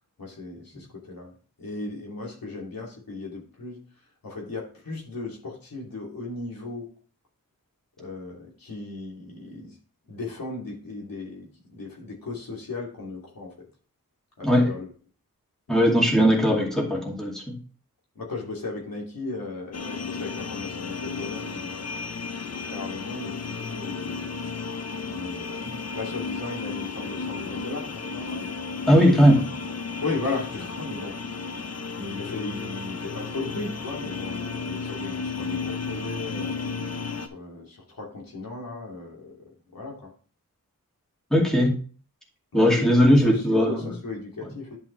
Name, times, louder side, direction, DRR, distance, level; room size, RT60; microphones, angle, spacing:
voice 1, 0.2-1.3 1.6-3.8 4.2-6.9 8.0-9.7 10.1-11.5 11.7-13.5 14.4-14.9 15.7-15.9 18.1-21.9 22.5-24.5 25.0-25.7 25.9-28.5 30.0-31.5 32.0-39.4 39.7-40.1 42.5-44.8, left 3 dB, 80° left, -2 dB, 2.9 m, -36 dB
voice 2, 15.7-17.6 28.9-29.4 41.3-41.7 42.5-43.9, equal, ahead, -2 dB, 2.4 m, -19 dB
sound 1, 19.7-37.3, left 4 dB, 45° left, 0.8 m, -33 dB
11.0 x 5.6 x 3.3 m, 0.40 s
wide cardioid pair, 90°, 34 cm